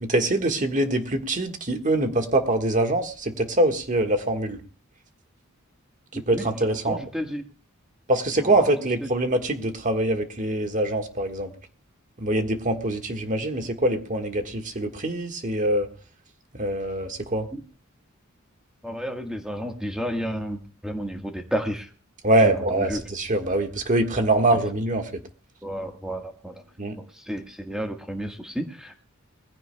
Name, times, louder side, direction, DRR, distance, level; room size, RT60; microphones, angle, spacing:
voice 1, 0.0-4.6 6.1-7.0 8.1-11.5 12.2-15.9 16.6-17.5 22.2-25.1 26.8-27.0, right 1 dB, 35° right, 5 dB, 1.6 m, -24 dB
voice 2, 6.1-6.5 6.8-7.4 8.4-8.6 9.0-9.1 17.5-17.6 18.8-21.9 22.4-23.0 25.6-26.6 27.0-29.0, equal, 5° right, 3 dB, 1.5 m, -32 dB
21.0 x 15.5 x 2.3 m, 0.40 s
head